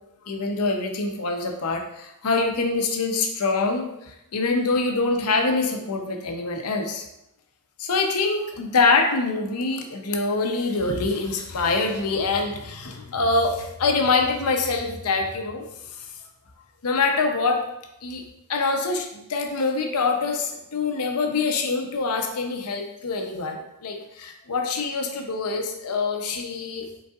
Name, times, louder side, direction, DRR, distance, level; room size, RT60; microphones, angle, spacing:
voice 1, 0.2-7.1 7.8-15.6 15.9-16.1 16.8-17.6 18.0-18.2 18.5-26.9, left 3 dB, 75° left, 4 dB, 0.7 m, -25 dB
5.3 x 4.0 x 2.4 m, 0.86 s
head